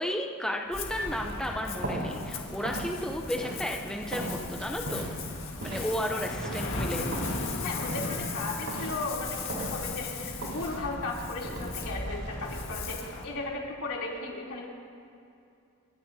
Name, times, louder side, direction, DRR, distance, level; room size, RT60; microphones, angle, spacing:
voice 1, 0.0-5.1 5.6-7.1, equal, 5° left, 1 dB, 0.7 m, -33 dB
Ocean, 0.7-13.3, left 3 dB, 60° left, 1.8 m, -37 dB
sound 1, 0.7-12.9, right 1 dB, 75° right, 4.5 m, -39 dB
voice 2, 5.8-6.2 7.6-14.7, left 2 dB, 80° left, -4 dB, 3.3 m, -36 dB
29.5 x 13.0 x 2.8 m, 2.6 s
head